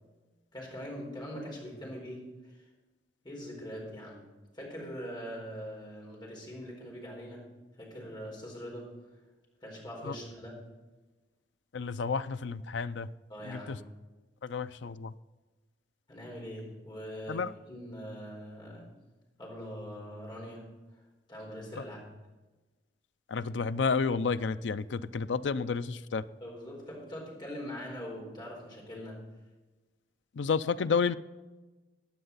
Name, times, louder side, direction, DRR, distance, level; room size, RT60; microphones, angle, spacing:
voice 1, 0.5-2.6 3.2-4.3 4.5-7.5 7.8-9.0 9.6-10.7 13.3-13.9 16.1-18.9 19.4-20.7 21.3-22.2 26.4-29.3, equal, 25° left, -2 dB, 4.4 m, -42 dB
voice 2, 11.7-13.1 13.4-13.8 14.4-15.1 17.3-17.5 23.3-26.2 30.4-31.2, left 5 dB, 80° left, 13 dB, 0.5 m, -31 dB
15.5 x 9.5 x 4.1 m, 1.2 s
head